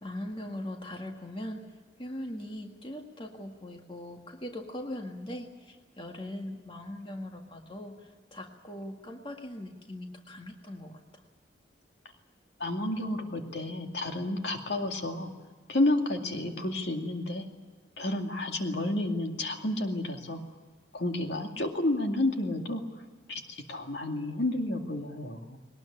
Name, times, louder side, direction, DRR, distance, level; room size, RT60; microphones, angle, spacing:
voice 1, 0.0-1.6 2.0-11.2, left 1 dB, 25° left, 3 dB, 1.8 m, -40 dB
voice 2, 12.6-15.3 15.7-17.5 18.0-20.4 20.9-22.8 23.3-25.6, left 1 dB, 65° left, 4 dB, 2.3 m, -31 dB
21.0 x 19.0 x 9.9 m, 1.3 s
head